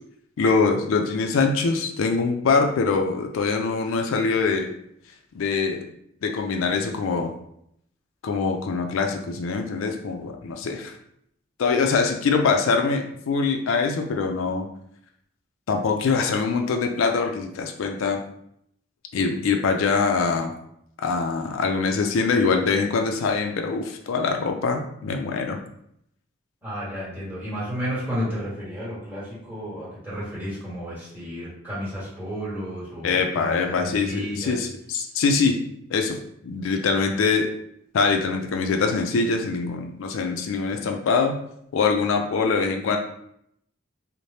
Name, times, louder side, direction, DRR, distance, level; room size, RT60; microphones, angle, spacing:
voice 1, 0.4-4.7 5.3-5.8 6.2-7.3 8.2-11.0 11.6-14.7 15.7-18.2 19.1-20.5 21.0-25.6 33.0-35.6 35.9-37.5 37.9-41.4 41.7-43.0, left 4 dB, 85° left, 4 dB, 0.4 m, -23 dB
voice 2, 26.6-34.6, equal, 10° right, -9 dB, 1.3 m, -32 dB
3.2 x 2.1 x 2.7 m, 0.72 s
head